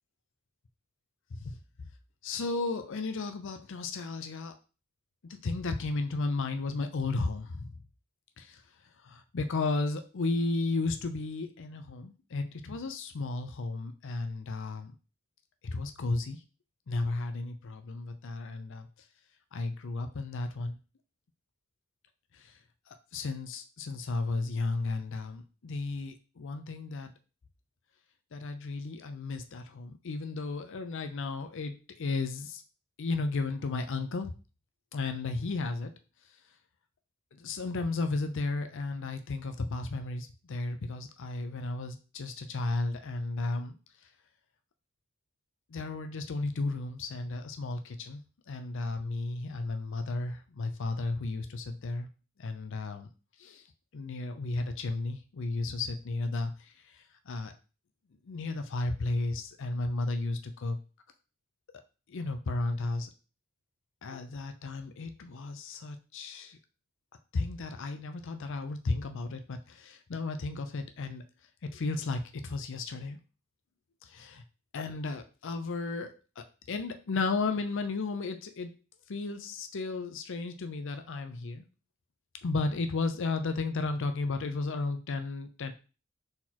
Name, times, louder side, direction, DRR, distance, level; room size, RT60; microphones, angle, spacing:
voice 1, 2.2-4.6 5.4-7.8 8.4-8.6 9.0-15.0 15.6-16.4 16.9-18.9 19.5-20.8 22.3-22.5 23.1-27.1 28.3-32.6 33.0-34.3 34.9-35.9 37.4-43.8 45.7-48.2 48.5-52.1 52.4-53.1 53.4-53.6 53.9-56.5 56.9-57.5 58.2-60.8 62.1-63.1 64.0-66.6 67.3-71.2 71.7-73.2 74.0-74.4 74.7-78.7 79.1-81.6 82.4-85.7, left 3 dB, 60° left, 8 dB, 0.5 m, -34 dB
4.2 x 4.0 x 2.9 m, 0.34 s
head